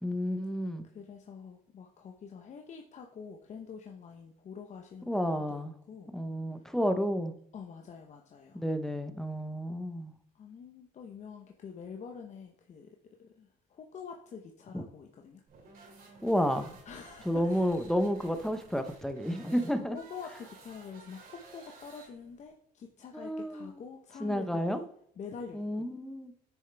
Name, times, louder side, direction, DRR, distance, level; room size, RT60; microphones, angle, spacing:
voice 1, 0.0-0.9 5.0-5.7 6.1-7.3 8.5-10.1 14.7-14.8 16.2-16.8 17.2-20.0 23.1-23.7 24.2-24.8 25.5-26.3, equal, ahead, 8 dB, 0.7 m, -31 dB
voice 2, 0.9-5.6 5.9-6.1 7.5-8.6 10.3-12.9 13.2-15.4 16.8-17.8 19.8-24.8 25.2-25.9, left 6 dB, 45° left, 3 dB, 0.8 m, -46 dB
sound 1, 15.5-22.5, right 3 dB, 60° right, 2.4 m, -55 dB
9.8 x 6.4 x 3.4 m, 0.66 s
cardioid pair, 110°, 17 cm